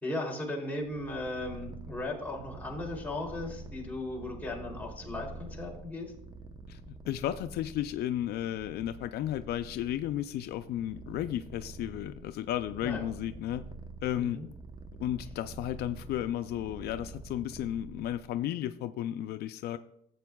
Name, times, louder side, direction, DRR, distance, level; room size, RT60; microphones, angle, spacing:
voice 1, 0.0-6.1 12.8-13.0 14.1-14.5, left 2 dB, 10° left, -2 dB, 2.9 m, -37 dB
Purr, 0.8-18.5, right 3 dB, 25° right, 0.9 m, -47 dB
voice 2, 7.1-13.6 14.0-14.4 15.0-19.8, left 12 dB, 70° left, 10 dB, 0.4 m, -33 dB
15.0 x 7.9 x 2.3 m, 0.76 s
cardioid pair, 110°, 17 cm